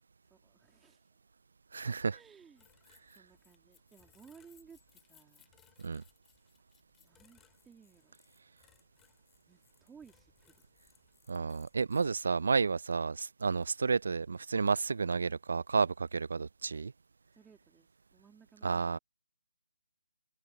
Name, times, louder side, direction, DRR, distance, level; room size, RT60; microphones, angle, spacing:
voice 1, 0.3-1.1 2.1-2.7 3.1-5.5 7.0-8.1 9.5-10.6 17.3-19.0, right 6 dB, 5° right, 3.0 m, -59 dB
voice 2, 1.7-2.2 5.8-6.0 11.3-16.9 18.6-19.0, right 4 dB, 60° right, 0.5 m, -31 dB
sound 1, 2.6-12.0, left 9 dB, 10° left, 5.1 m, -67 dB
figure-of-eight pair, 150°, 0 cm